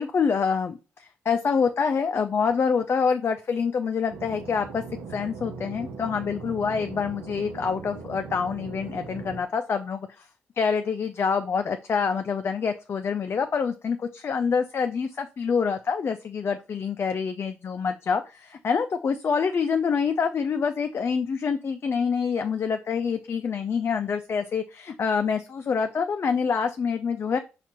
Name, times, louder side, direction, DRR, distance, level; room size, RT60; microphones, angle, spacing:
voice 1, 0.0-4.8 5.1-10.3 10.6-27.4, left 6 dB, 45° left, 7 dB, 0.4 m, -26 dB
sound 1, 4.1-9.4, right 5 dB, 85° right, 0.7 m, -39 dB
4.3 x 2.4 x 4.3 m, 0.31 s
supercardioid pair, 50°, 6 cm